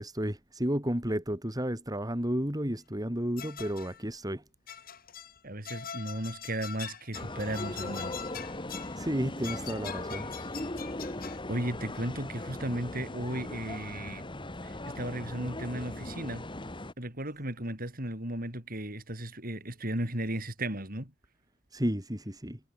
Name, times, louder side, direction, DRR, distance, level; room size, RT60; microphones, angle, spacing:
voice 1, 0.0-4.4 9.0-10.3 21.7-22.6, equal, 20° right, 5.2 m, -32 dB
sound 1, 3.4-4.0 4.7-5.4 5.6-9.0 9.4-11.4, left 8 dB, 50° left, 2.6 m, -43 dB
voice 2, 5.4-8.2 11.5-14.3 14.6-16.4 17.0-21.1, right 1 dB, 50° right, 7.9 m, -35 dB
sound 2, 7.1-16.9, left 1 dB, 25° left, 2.5 m, -39 dB
head